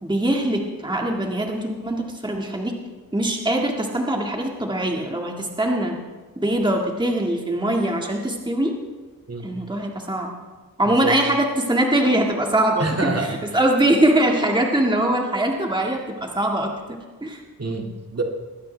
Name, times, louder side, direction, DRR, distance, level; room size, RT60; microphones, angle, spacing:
voice 1, 0.0-2.7 3.1-6.0 6.4-8.8 9.4-10.3 10.8-13.1 13.5-17.4, right 1 dB, 15° right, 1 dB, 1.8 m, -22 dB
voice 2, 10.8-11.2 12.8-13.6 17.6-18.2, right 3 dB, 45° right, 1 dB, 2.3 m, -27 dB
21.0 x 16.0 x 3.4 m, 1.3 s
wide cardioid pair, 85°, 36 cm